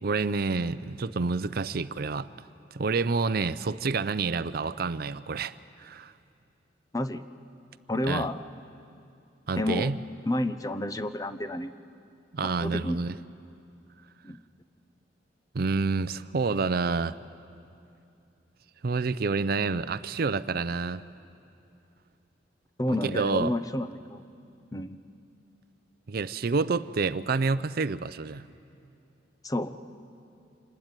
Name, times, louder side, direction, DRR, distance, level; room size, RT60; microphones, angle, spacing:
voice 1, 0.0-2.3 2.7-6.1 8.1-8.3 9.5-10.0 12.3-13.2 15.5-17.2 18.8-21.0 23.0-23.5 26.1-28.5, right 4 dB, 55° right, 15 dB, 0.5 m, -28 dB
voice 2, 7.9-8.4 9.6-9.9 10.3-11.7 12.6-13.0 14.2-14.4 22.8-24.2 24.7-25.0 29.4-29.7, left 1 dB, 20° left, 11 dB, 0.7 m, -30 dB
26.0 x 20.5 x 9.0 m, 2.6 s
head